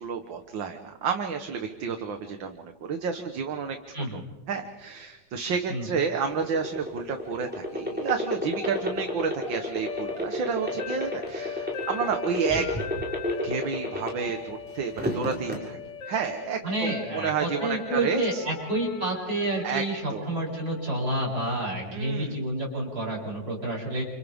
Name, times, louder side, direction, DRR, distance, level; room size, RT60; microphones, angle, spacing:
voice 1, 0.0-3.8 4.1-4.2 4.5-12.7 13.4-15.8 16.1-18.4 19.6-19.8 20.1-20.3 21.9-22.4, right 6 dB, 80° right, 5 dB, 2.1 m, -30 dB
sound 1, 6.2-14.4 14.8-15.6, left 1 dB, 5° right, 6.6 m, -30 dB
sound 2, 7.5-21.6, left 7 dB, 70° left, 1.7 m, -40 dB
voice 2, 16.6-24.0, right 1 dB, 55° right, -4 dB, 8.4 m, -29 dB
30.0 x 29.0 x 3.6 m, 1.1 s
omnidirectional pair, 2.0 m